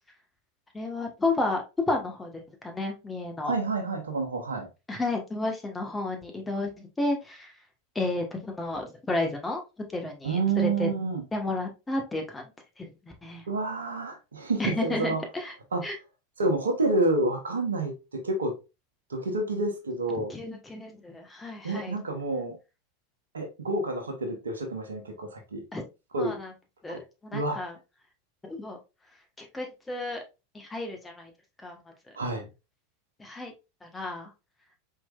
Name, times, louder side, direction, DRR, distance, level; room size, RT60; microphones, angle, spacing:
voice 1, 0.7-3.5 4.9-7.5 7.9-9.6 9.9-10.9 11.3-12.5 12.8-13.5 14.6-15.5 15.8-16.0 20.3-22.0 25.7-25.8 26.2-26.5 26.8-27.8 28.4-28.8 29.4-30.2 30.5-31.3 31.6-32.2 33.2-33.5 33.8-34.3, left 2 dB, 15° left, 1.3 m, -32 dB
voice 2, 3.4-4.7 10.2-11.2 13.5-15.2 15.7-15.8 16.4-18.6 19.1-20.3 21.6-22.6 23.3-25.6 26.1-26.4 26.9-27.0 27.3-27.6 32.1-32.5, right 2 dB, 85° right, 1.1 m, -28 dB
4.7 x 3.8 x 2.3 m
hypercardioid pair, 90°, 0 cm